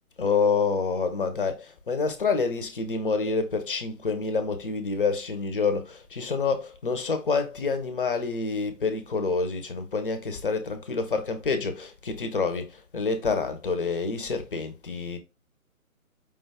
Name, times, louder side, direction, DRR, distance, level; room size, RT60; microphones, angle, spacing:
voice 1, 0.2-15.2, left 4 dB, 40° left, 0.7 m, -27 dB
5.0 x 2.3 x 3.3 m
figure-of-eight pair, 145°, 42 cm